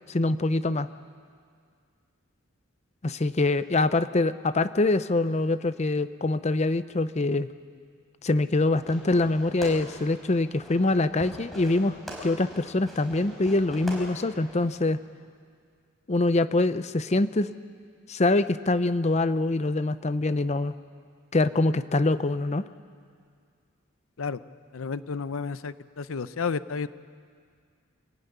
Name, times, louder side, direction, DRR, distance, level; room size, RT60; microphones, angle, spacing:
voice 1, 0.1-0.9 3.0-7.5 8.2-15.0 16.1-17.5 18.1-20.7 21.3-22.6, left 2 dB, 35° left, 13 dB, 0.6 m, -24 dB
Fireworks, 8.7-14.7, equal, ahead, 4.7 m, -43 dB
voice 2, 24.7-26.9, left 5 dB, 90° left, 15 dB, 0.7 m, -31 dB
24.5 x 16.5 x 9.5 m, 2.1 s
head